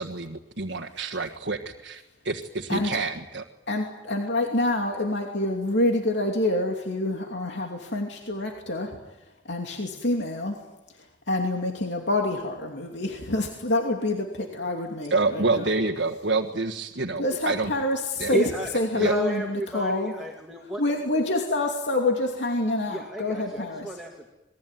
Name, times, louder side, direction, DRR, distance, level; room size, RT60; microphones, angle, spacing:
voice 1, 0.0-3.4 15.1-17.7 18.2-18.4 18.9-19.1, right 3 dB, 70° right, 1 dB, 1.6 m, -28 dB
voice 2, 3.7-9.0 9.5-10.6 11.3-15.7 17.2-20.1 20.6-23.9, left 2 dB, 70° left, 2 dB, 2.8 m, -27 dB
voice 3, 18.3-18.7 19.0-20.8 22.9-24.3, right 1 dB, ahead, -1 dB, 2.3 m, -31 dB
27.5 x 21.0 x 9.3 m, 0.98 s
head